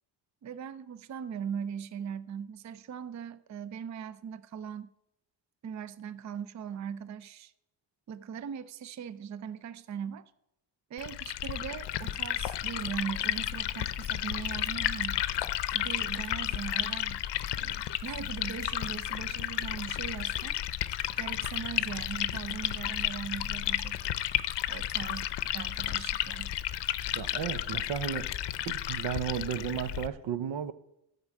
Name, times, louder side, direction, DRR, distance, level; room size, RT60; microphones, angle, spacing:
voice 1, 0.4-4.9 5.6-7.5 8.1-10.2 10.9-15.2 15.7-17.2 17.6-20.6 21.2-24.0 24.7-25.3 25.5-26.5, right 8 dB, 40° right, 0.5 m, -39 dB
Liquid, 11.0-30.1, left 12 dB, 70° left, 0.6 m, -32 dB
voice 2, 27.1-28.3 28.7-30.7, right 9 dB, 85° right, 0.8 m, -34 dB
13.0 x 5.3 x 7.4 m
wide cardioid pair, 155°, 43 cm